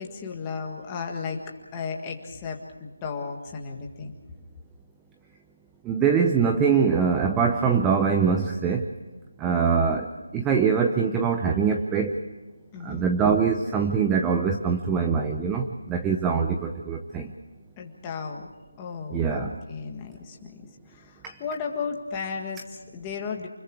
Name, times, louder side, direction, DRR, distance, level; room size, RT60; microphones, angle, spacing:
voice 1, 0.0-4.1 12.7-13.1 17.8-18.5 18.8-20.6 20.9-23.5, left 5 dB, 10° left, 1 dB, 1.8 m, -34 dB
voice 2, 5.9-8.9 9.4-10.1 10.3-12.1 12.8-17.3 19.1-19.5, right 6 dB, 5° right, 4 dB, 0.6 m, -23 dB
29.0 x 21.5 x 4.8 m, 1.2 s
figure-of-eight pair, 175°, 0 cm